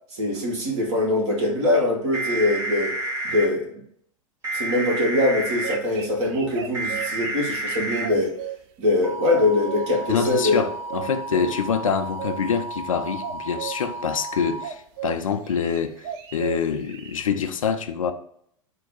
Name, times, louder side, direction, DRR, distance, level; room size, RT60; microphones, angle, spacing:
voice 1, 0.1-3.0 3.2-3.8 4.5-8.3 8.8-10.6 11.3-11.4, left 2 dB, 55° right, 1.7 m, -23 dB
sound 1, 2.1-3.5 4.4-5.8 6.7-8.1 9.0-14.6, right 2 dB, 15° right, 1.1 m, -31 dB
sound 2, 5.4-8.6 9.3-10.0 10.5-11.1 11.8-12.4 13.2-13.8 14.6-15.2 15.4-17.2, right 10 dB, 40° right, 0.4 m, -35 dB
voice 2, 10.1-18.1, left 7 dB, 70° left, 0.5 m, -26 dB
4.5 x 2.2 x 3.9 m
figure-of-eight pair, 95°, 18 cm